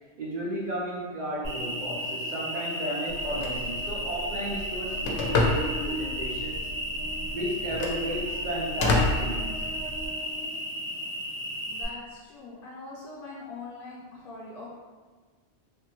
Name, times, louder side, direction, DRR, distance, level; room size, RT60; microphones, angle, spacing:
voice 1, 0.2-6.5 7.3-9.5, right 1 dB, 55° right, -6 dB, 0.6 m, -33 dB
Cricket, 1.4-11.8, equal, 75° right, 1.2 m, -33 dB
Telephone, 3.1-10.1, left 2 dB, 85° left, 0.9 m, -31 dB
voice 2, 11.7-14.7, left 3 dB, 55° left, -5 dB, 0.8 m, -42 dB
3.4 x 2.1 x 2.8 m, 1.4 s
omnidirectional pair, 1.2 m